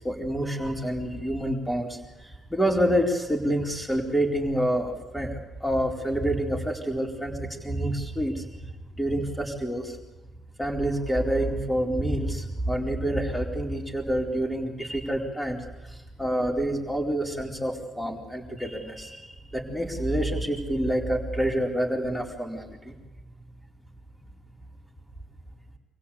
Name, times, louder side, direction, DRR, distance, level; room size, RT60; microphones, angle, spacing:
voice 1, 0.0-8.7 8.9-10.0 10.6-23.0, right 1 dB, 5° left, 0 dB, 4.3 m, -28 dB
26.5 x 16.5 x 8.6 m, 1.1 s
cardioid pair, 90°, 0 cm